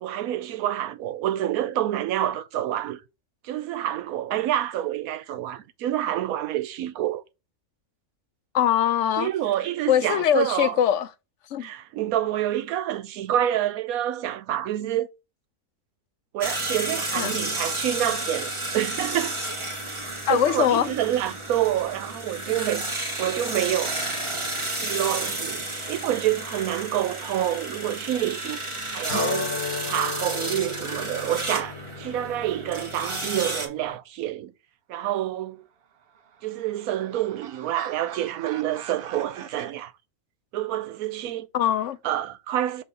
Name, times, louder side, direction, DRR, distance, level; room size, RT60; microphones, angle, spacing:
voice 1, 0.0-3.0 3.4-7.2 9.2-10.8 11.6-15.1 16.3-19.4 20.3-24.0 24.8-34.5 34.9-35.6 36.4-39.9 40.5-41.5 42.0-42.8, right 12 dB, 85° right, 1.1 m, -28 dB
voice 2, 8.5-9.3 9.9-11.1 11.5-11.7 17.1-17.4 20.3-20.9 41.5-42.0, left 10 dB, 65° left, 0.8 m, -22 dB
sound 1, 16.4-33.7, right 2 dB, 25° right, 1.0 m, -32 dB
sound 2, 29.1-33.9, left 6 dB, 90° left, 1.5 m, -35 dB
sound 3, 35.8-39.7, right 8 dB, 60° right, 0.6 m, -44 dB
6.0 x 3.1 x 5.3 m
omnidirectional pair, 1.5 m